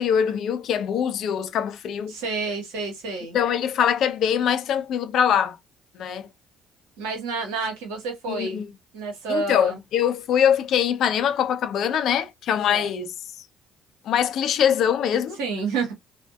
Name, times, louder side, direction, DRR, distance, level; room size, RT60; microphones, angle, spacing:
voice 1, 0.0-2.1 3.3-5.6 5.9-6.3 8.3-8.7 9.3-13.1 14.0-15.4, left 8 dB, 60° left, 0.4 m, -23 dB
voice 2, 2.1-3.4 7.0-8.7 8.9-9.8 12.7-12.9 15.4-15.9, right 4 dB, 75° right, 1.0 m, -29 dB
2.6 x 2.1 x 2.3 m
hypercardioid pair, 50°, 0 cm